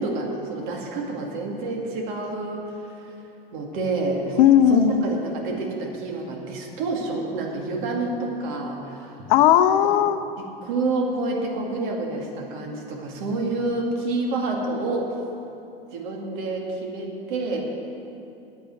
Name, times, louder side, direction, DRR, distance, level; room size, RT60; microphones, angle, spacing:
voice 1, 0.0-3.1 3.5-4.4 4.7-9.2 9.8-9.9 10.4-15.2 15.9-17.6, right 2 dB, 55° right, 0 dB, 2.4 m, -28 dB
voice 2, 4.4-5.0 9.3-10.2, left 10 dB, 55° left, 11 dB, 0.7 m, -16 dB
9.0 x 8.6 x 9.3 m, 2.8 s
hypercardioid pair, 90°, 29 cm